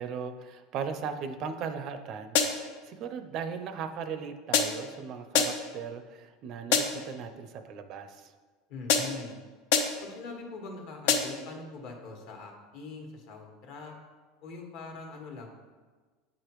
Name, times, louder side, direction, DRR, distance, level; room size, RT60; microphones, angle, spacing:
voice 1, 0.0-8.3, right 6 dB, 45° right, 9 dB, 0.5 m, -38 dB
sound 1, 2.4-2.8 4.5-5.0 5.3-5.8 6.7-7.1 8.9-9.3 9.7-10.1 11.1-11.5, left 6 dB, 80° left, 0.7 m, -27 dB
voice 2, 8.7-9.3 10.0-13.9 14.4-15.5, left 3 dB, 60° left, 1 dB, 1.3 m, -42 dB
8.5 x 4.9 x 3.0 m, 1.4 s
supercardioid pair, 145°, 0 cm